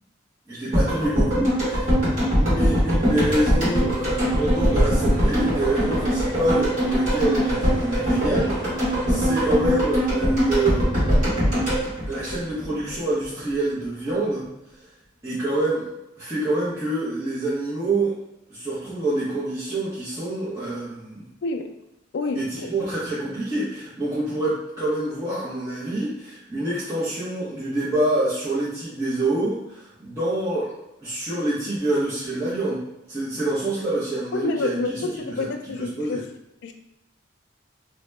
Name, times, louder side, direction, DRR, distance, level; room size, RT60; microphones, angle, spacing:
voice 1, 0.5-2.0 2.4-11.2 12.1-14.5 14.8-14.9 15.2-15.9 16.2-18.2 18.5-21.2 22.3-30.7 31.0-36.2, right 1 dB, 15° right, -12 dB, 0.7 m, -26 dB
sound 1, 0.7-12.9 13.2-13.3, equal, 40° right, 1.2 m, -22 dB
sound 2, 4.2-9.4, equal, 70° right, 0.8 m, -37 dB
voice 2, 34.3-36.2 36.6-36.7, left 3 dB, 60° left, 5 dB, 0.3 m, -28 dB
2.8 x 2.1 x 3.1 m, 0.88 s
head